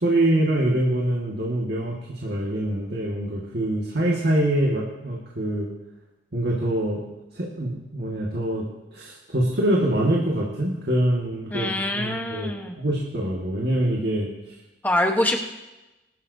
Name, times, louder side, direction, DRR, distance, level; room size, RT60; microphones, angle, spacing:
voice 1, 0.0-2.0 2.2-5.7 6.3-7.0 7.4-8.6 8.9-14.3, right 1 dB, 60° right, -3 dB, 1.8 m, -24 dB
voice 2, 11.5-12.8 14.8-15.4, left 1 dB, 10° left, 3 dB, 1.1 m, -24 dB
21.0 x 13.0 x 2.8 m, 1.0 s
head